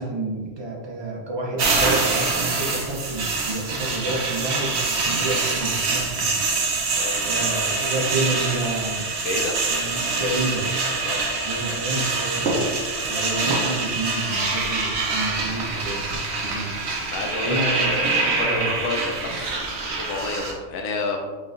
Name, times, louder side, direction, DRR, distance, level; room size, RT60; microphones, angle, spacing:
voice 1, 0.0-6.4 7.2-9.1 9.7-10.7 11.4-12.7 13.0-16.8 17.4-17.9 18.4-18.7, right 2 dB, 35° right, -2 dB, 0.4 m, -29 dB
sound 1, 1.6-20.5, right 3 dB, 60° right, 0.8 m, -25 dB
voice 2, 9.2-10.2 11.0-11.2 17.1-21.3, left 3 dB, 85° left, 2 dB, 1.0 m, -30 dB
4.1 x 3.7 x 2.5 m, 1.4 s
omnidirectional pair, 1.4 m